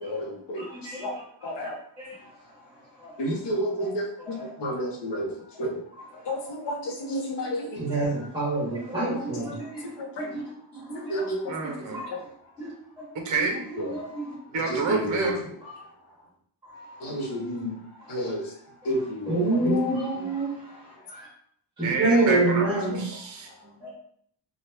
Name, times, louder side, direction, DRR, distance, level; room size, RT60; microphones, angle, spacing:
voice 1, 0.0-0.6 1.0-1.1 1.4-1.7 3.2-5.3 5.6-5.7 6.3-7.7 10.2-10.3 10.9-11.5 13.8-13.9 14.7-15.3 17.0-17.8 18.1-18.4 18.9-20.0 22.3-22.4 22.9-23.0, equal, 60° left, 0 dB, 0.8 m, -30 dB
voice 2, 0.5-1.7 2.0-2.2 3.0-3.3 3.8-3.9 4.3-4.5 7.8-9.9 10.2-10.4 10.7-11.3 11.6-12.2 12.6-12.7 13.9-14.3 15.6-15.7 16.7-16.9 19.3-21.3 21.8-23.0 23.8-23.9, right 2 dB, 10° right, -6 dB, 1.0 m, -28 dB
voice 3, 11.5-12.0 13.1-13.6 14.5-15.4 17.3-17.4 21.8-23.8, right 4 dB, 40° right, 2 dB, 0.6 m, -28 dB
2.9 x 2.3 x 3.2 m, 0.64 s
wide cardioid pair, 140°, 47 cm